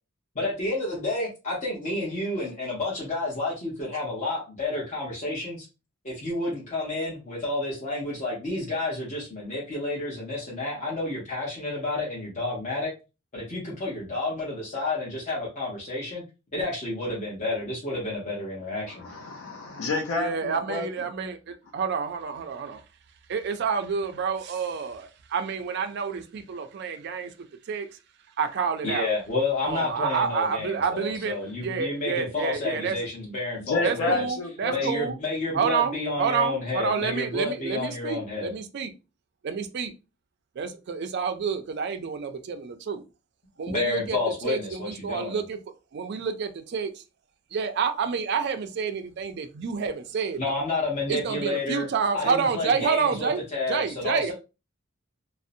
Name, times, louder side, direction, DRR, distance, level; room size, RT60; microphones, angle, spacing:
voice 1, 0.3-5.7 6.0-12.9 13.3-16.2 16.5-19.1 28.8-34.2 34.7-38.5 43.7-45.4 50.4-51.9 52.1-54.3, left 2 dB, 35° left, 0.7 m, -30 dB
voice 2, 18.9-20.9 33.7-34.9, left 3 dB, 75° left, 0.4 m, -30 dB
voice 3, 20.1-22.8 23.3-27.3 27.7-27.9 28.4-29.1 29.6-33.0 33.8-35.2 35.5-38.9 39.4-39.9 40.6-43.0 43.6-44.2 44.4-45.6 45.9-47.0 47.5-50.5 51.1-53.4 53.7-54.3, right 6 dB, 50° right, 0.3 m, -29 dB
2.6 x 2.0 x 2.5 m
head